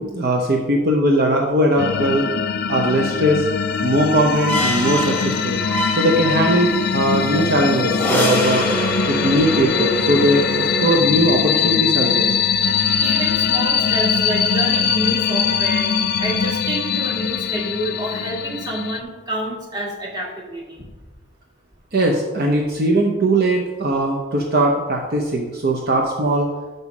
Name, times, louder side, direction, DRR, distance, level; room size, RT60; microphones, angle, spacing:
voice 1, 0.0-2.3 2.7-3.5 3.8-5.6 6.0-8.7 9.1-12.3 21.9-26.5, right 1 dB, 55° right, 1 dB, 0.7 m, -19 dB
sound 1, 1.8-19.0, left 7 dB, 55° left, 0.4 m, -21 dB
sound 2, 3.7-11.0, equal, 10° left, 1.1 m, -25 dB
voice 2, 13.0-20.9, right 1 dB, 20° right, -3 dB, 1.8 m, -28 dB
5.6 x 5.4 x 6.0 m, 1.2 s
head